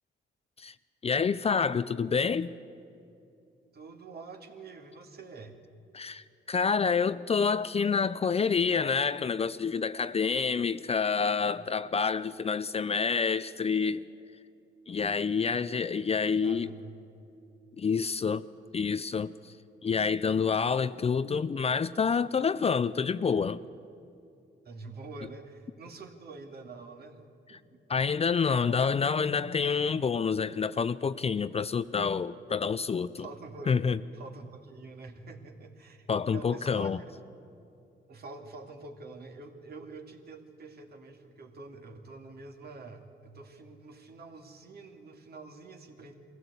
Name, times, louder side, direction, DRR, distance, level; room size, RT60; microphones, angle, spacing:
voice 1, 1.0-2.6 5.9-14.0 14.9-16.7 17.8-18.5 18.7-19.3 19.8-23.6 27.9-33.3 33.7-34.0 36.1-37.0, left 5 dB, 30° left, 14 dB, 0.5 m, -28 dB
voice 2, 3.7-5.6 11.6-11.7 15.5-16.9 19.5-19.6 24.6-27.8 33.2-33.8 34.1-37.1 38.1-46.1, right 3 dB, 55° right, 4 dB, 2.3 m, -47 dB
22.0 x 16.0 x 8.2 m, 2.6 s
cardioid pair, 90°, 20 cm